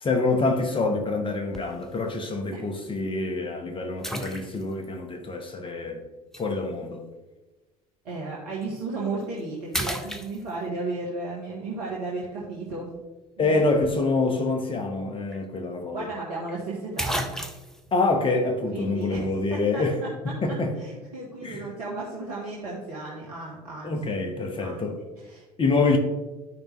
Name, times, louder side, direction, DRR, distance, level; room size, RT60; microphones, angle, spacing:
voice 1, 0.0-6.0 6.4-7.0 13.4-16.1 17.9-20.0 20.4-20.7 21.4-21.6 23.8-25.0 25.6-26.0, left 3 dB, 25° left, 1.3 m, -26 dB
sound 1, 1.5-1.9 2.5-2.6 4.0-4.9 6.3-6.5 8.6-8.8 9.2-9.4 9.7-10.8 14.9-15.0 15.3-15.4 16.5-16.6 17.0-17.8, equal, ahead, 0.8 m, -32 dB
voice 2, 8.0-12.9 13.4-13.6 15.9-17.3 18.7-19.2 19.5-20.1 20.5-23.9 24.6-24.8 25.2-25.4, right 3 dB, 65° right, 1.4 m, -34 dB
12.0 x 5.2 x 3.1 m
figure-of-eight pair, 60°, 20 cm